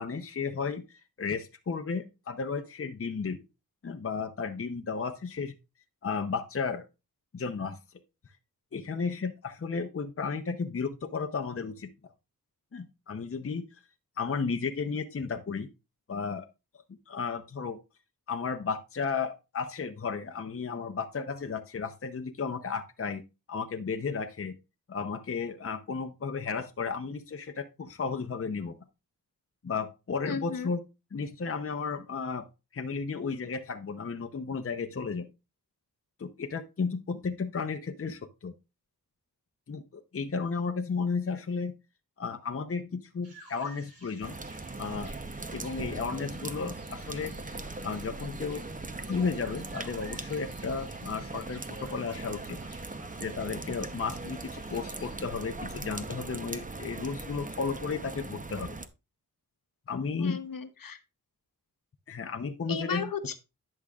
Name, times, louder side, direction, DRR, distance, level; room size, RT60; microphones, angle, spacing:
voice 1, 0.0-3.4 3.8-5.5 6.0-6.9 7.3-7.8 8.7-11.9 12.7-13.6 14.2-15.7 16.1-16.5 17.1-17.8 18.3-23.2 23.5-24.5 24.9-28.8 29.6-30.8 31.1-32.5 32.7-35.3 36.2-38.5 39.7-41.7 42.2-44.4 44.8-45.1 45.5-47.3 47.8-48.7 49.1-52.6 53.2-58.8 59.9-60.4 62.1-63.1, left 5 dB, 35° left, 6 dB, 0.7 m, -33 dB
voice 2, 30.2-30.7 60.2-61.0 62.7-63.4, left 6 dB, 60° left, 9 dB, 1.0 m, -35 dB
sound 1, 43.2-55.1, right 2 dB, 80° right, 3.9 m, -55 dB
sound 2, 44.2-58.9, right 3 dB, 20° right, 0.7 m, -40 dB
10.5 x 6.5 x 2.4 m, 0.27 s
cardioid pair, 60°, 37 cm